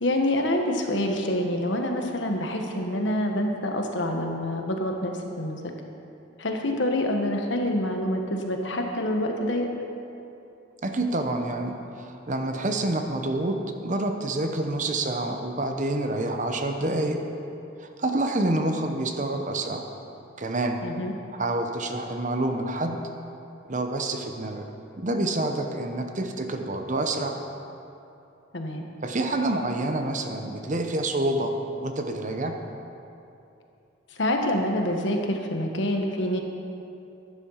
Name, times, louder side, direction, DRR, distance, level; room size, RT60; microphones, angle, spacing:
voice 1, 0.0-5.6 6.4-9.7 20.8-21.1 28.5-28.9 34.1-36.4, left 1 dB, 65° left, 3 dB, 1.3 m, -26 dB
voice 2, 10.8-13.6 13.8-17.2 17.8-19.8 20.4-20.9 21.3-23.0 23.7-24.6 25.0-27.4 29.0-31.5 31.8-32.6, right 2 dB, 40° right, 5 dB, 0.9 m, -27 dB
11.5 x 10.5 x 5.6 m, 2.7 s
head